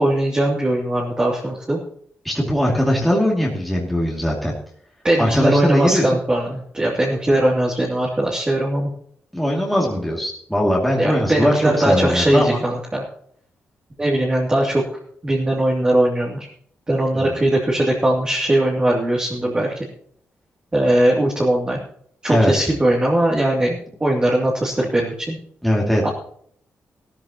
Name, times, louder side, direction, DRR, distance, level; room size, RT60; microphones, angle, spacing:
voice 1, 0.0-1.8 5.0-8.9 11.0-13.0 14.0-14.9 15.2-16.5 16.9-19.7 20.7-21.8 22.2-25.4 26.0-26.1, right 1 dB, 20° right, -3 dB, 2.8 m, -20 dB
voice 2, 2.2-4.5 5.2-6.2 9.3-12.6 17.1-17.4 22.3-22.5 25.6-26.1, equal, ahead, -3 dB, 2.5 m, -20 dB
17.0 x 13.5 x 3.0 m, 0.63 s
wide cardioid pair, 145°, 5 cm